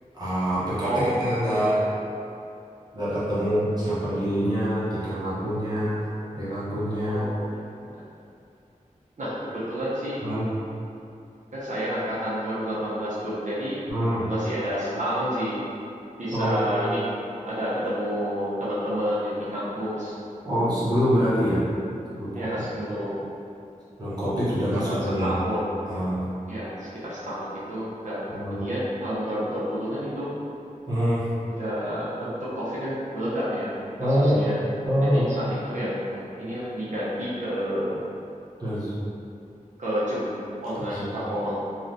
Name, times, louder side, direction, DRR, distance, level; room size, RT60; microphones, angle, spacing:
voice 1, 0.1-0.9 1.2-1.8 2.9-7.3 10.2-10.5 13.9-14.3 16.3-16.6 20.4-21.6 22.1-22.5 24.0-25.4 25.8-26.2 28.3-28.6 30.9-31.2 34.0-34.4 34.8-35.3 38.6-39.0 40.9-41.0, equal, 30° right, -12 dB, 0.9 m, -25 dB
voice 2, 0.8-1.8 7.0-8.0 9.2-10.2 11.5-13.8 14.3-15.6 16.2-17.1 17.4-20.1 22.3-23.2 25.0-25.7 26.5-30.3 31.4-33.7 34.1-34.6 35.0-38.0 39.8-40.3 40.6-41.5, equal, 65° right, -10 dB, 0.7 m, -29 dB
3.2 x 2.4 x 2.6 m, 2.7 s
wide cardioid pair, 85°, 14 cm